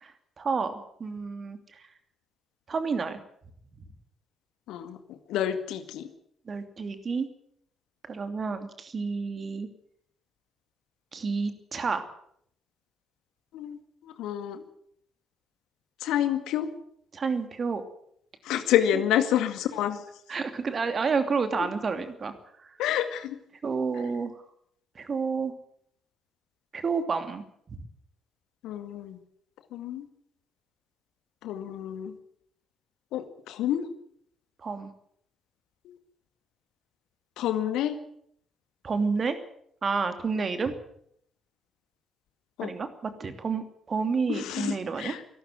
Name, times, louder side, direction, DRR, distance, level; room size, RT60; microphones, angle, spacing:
voice 1, 0.0-1.8 2.7-3.2 6.5-7.3 8.0-9.7 11.1-12.0 17.1-17.8 18.9-19.0 20.3-22.3 22.6-22.8 23.6-24.3 24.9-25.5 26.7-27.4 27.7-27.8 34.6-34.9 38.8-39.4 39.8-40.7 42.6-45.1, right 5 dB, 40° right, 9 dB, 2.8 m, -30 dB
voice 2, 4.7-6.1 13.5-13.8 14.2-14.6 16.0-16.7 18.4-20.0 22.8-23.4 28.6-29.2 29.7-30.1 31.4-32.2 33.1-33.9 35.9-36.0 37.4-38.0 42.6-42.7 44.3-45.2, left 11 dB, 65° left, 9 dB, 2.0 m, -28 dB
23.0 x 13.0 x 9.1 m, 0.69 s
figure-of-eight pair, 45°, 0 cm